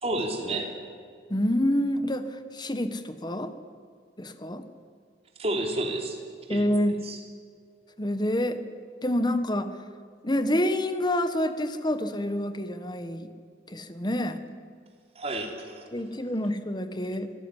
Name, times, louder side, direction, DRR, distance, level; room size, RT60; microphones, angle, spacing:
voice 1, 0.0-0.7 5.4-6.2 6.5-6.7 7.0-7.2 15.2-15.8, right 1 dB, 35° right, 3 dB, 3.5 m, -30 dB
voice 2, 1.3-3.5 4.2-4.6 6.5-7.0 8.0-8.6 9.0-9.8 10.2-13.3 13.7-14.4 15.9-17.3, left 1 dB, 25° left, 11 dB, 1.4 m, -27 dB
25.5 x 15.5 x 9.9 m, 2.1 s
head